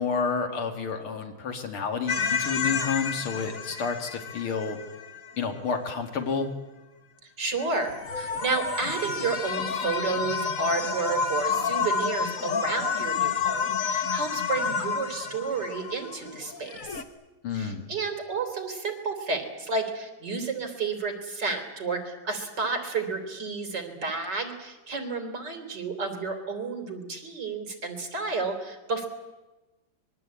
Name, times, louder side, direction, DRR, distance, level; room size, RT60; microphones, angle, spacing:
voice 1, 0.0-4.8 5.4-6.5 17.4-17.8, left 5 dB, 85° left, 4 dB, 3.0 m, -30 dB
sound 1, 2.1-5.3 7.6-17.0, left 5 dB, 45° left, 1.5 m, -30 dB
voice 2, 7.2-17.0 17.5-29.1, right 4 dB, 55° right, 6 dB, 4.0 m, -31 dB
25.0 x 22.0 x 8.6 m, 1.1 s
omnidirectional pair, 2.3 m